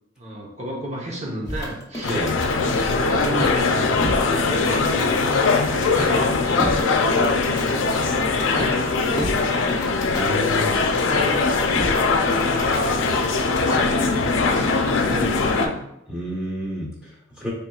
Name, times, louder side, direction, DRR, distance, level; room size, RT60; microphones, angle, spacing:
voice 1, 0.2-2.3 2.8-9.8 10.8-13.2 13.7-15.8, right 1 dB, 35° right, -2 dB, 0.9 m, -34 dB
sound 1, 1.4-13.8, left 1 dB, 15° left, 0.8 m, -32 dB
sound 2, 2.0-15.7, left 4 dB, 90° left, 0.5 m, -21 dB
voice 2, 2.1-2.4 10.1-10.8 16.1-17.5, equal, 5° right, -6 dB, 1.3 m, -29 dB
4.3 x 3.5 x 2.4 m, 0.78 s
head